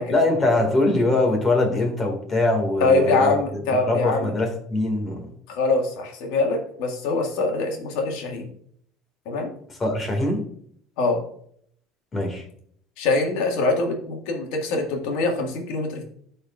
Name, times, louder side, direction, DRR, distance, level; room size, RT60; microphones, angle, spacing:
voice 1, 0.1-3.3 3.9-5.3 9.8-10.4 12.1-12.4, left 2 dB, 20° left, 3 dB, 1.9 m, -22 dB
voice 2, 2.8-4.3 5.5-8.5 9.2-9.5 11.0-11.2 13.0-16.0, left 3 dB, 80° left, 2 dB, 1.7 m, -23 dB
12.5 x 4.3 x 2.4 m, 0.64 s
cardioid pair, 145°, 0 cm